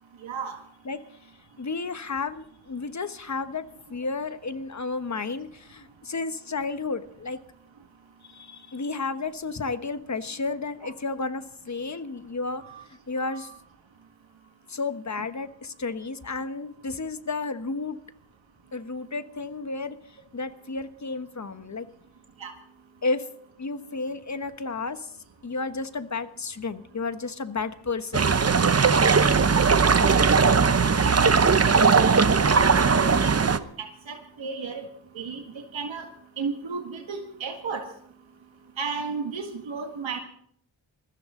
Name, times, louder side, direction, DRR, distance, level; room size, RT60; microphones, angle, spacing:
voice 1, 0.2-0.6 12.6-12.8 13.2-13.5 22.4-22.5 30.1-30.2 31.0-31.1 32.6-34.9 35.1-36.1 36.4-37.9 38.8-40.2, right 5 dB, 85° right, 3 dB, 2.0 m, -34 dB
voice 2, 1.6-7.4 8.2-13.5 14.7-18.0 18.7-21.9 23.0-23.3 23.6-25.1 25.4-28.3, left 3 dB, 40° left, 10 dB, 1.3 m, -32 dB
sound 1, 28.1-33.6, right 5 dB, 35° right, 0.9 m, -19 dB
21.5 x 15.0 x 3.9 m, 0.64 s
cardioid pair, 65°, 44 cm